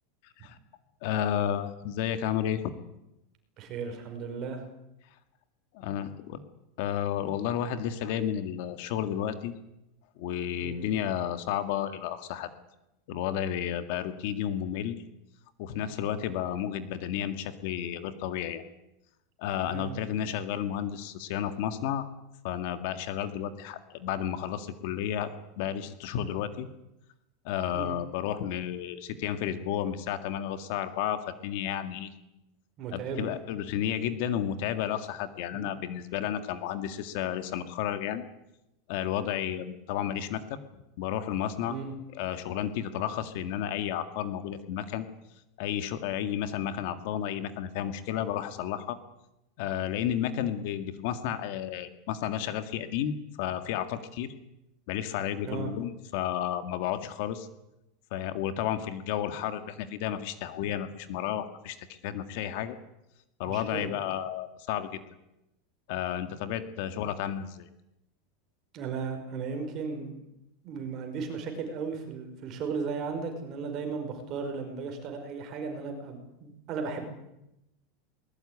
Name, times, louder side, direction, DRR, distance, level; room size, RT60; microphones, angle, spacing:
voice 1, 1.0-2.7 5.7-6.4 6.8-9.5 10.2-12.5 13.1-15.0 15.6-18.6 19.4-22.1 22.4-26.7 27.4-32.1 32.9-38.2 38.9-41.8 42.1-45.1 45.6-49.0 49.6-54.3 54.9-57.5 58.1-62.8 63.4-65.0 65.9-67.7, left 10 dB, 50° left, 10 dB, 1.9 m, -32 dB
voice 2, 3.6-4.6 10.6-10.9 19.7-20.0 27.7-28.0 32.8-33.3 35.5-35.8 41.7-41.9 55.5-55.7 63.5-63.9 68.7-70.2 70.6-77.0, right 5 dB, 30° right, 5 dB, 5.5 m, -36 dB
21.5 x 20.0 x 9.9 m, 0.89 s
supercardioid pair, 175°, 0 cm